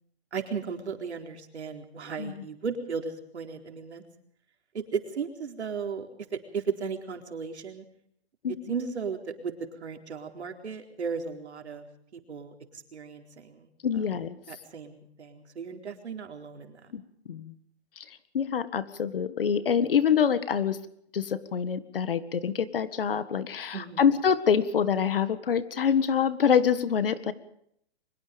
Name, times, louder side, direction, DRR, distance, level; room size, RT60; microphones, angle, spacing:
voice 1, 0.3-4.0 4.7-7.8 8.7-9.5 9.8-11.9 12.1-13.7 14.5-16.9 23.7-24.0, right 5 dB, 90° right, 4 dB, 4.2 m, -35 dB
voice 2, 13.8-14.4 16.9-17.0 17.3-17.5 18.0-18.1 18.3-20.8 21.1-27.3, left 7 dB, 60° left, 13 dB, 1.8 m, -25 dB
24.0 x 21.5 x 5.3 m, 0.69 s
hypercardioid pair, 175°, 32 cm